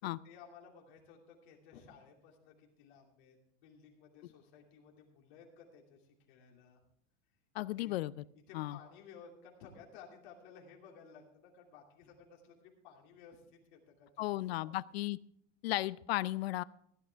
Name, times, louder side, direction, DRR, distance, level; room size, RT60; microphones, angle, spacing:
voice 1, 0.0-6.8 7.5-8.0 8.5-14.8, left 6 dB, 45° left, 0 dB, 2.8 m, -57 dB
voice 2, 7.5-8.1 8.5-8.8 14.2-15.2 15.6-16.6, left 17 dB, 60° left, 19 dB, 0.5 m, -35 dB
16.5 x 11.0 x 3.5 m, 0.68 s
supercardioid pair, 180°, 35 cm